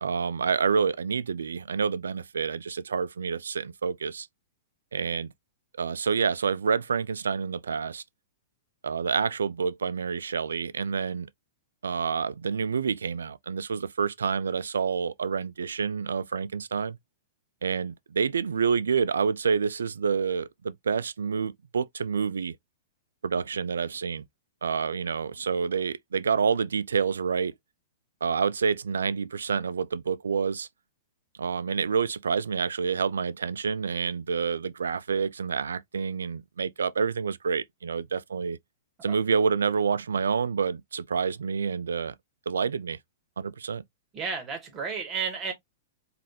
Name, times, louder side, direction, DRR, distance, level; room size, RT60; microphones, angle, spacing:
voice 1, 0.0-4.3 4.9-5.3 5.8-8.0 8.8-11.3 11.8-17.0 17.6-22.5 23.2-24.2 24.6-27.5 28.2-30.7 31.4-38.6 39.0-42.1 42.5-43.0 43.4-43.8, right 6 dB, 90° right, 0.3 m, -28 dB
voice 2, 44.1-45.5, right 6 dB, 25° right, 2.2 m, -32 dB
3.9 x 3.3 x 2.8 m
hypercardioid pair, 125°, 0 cm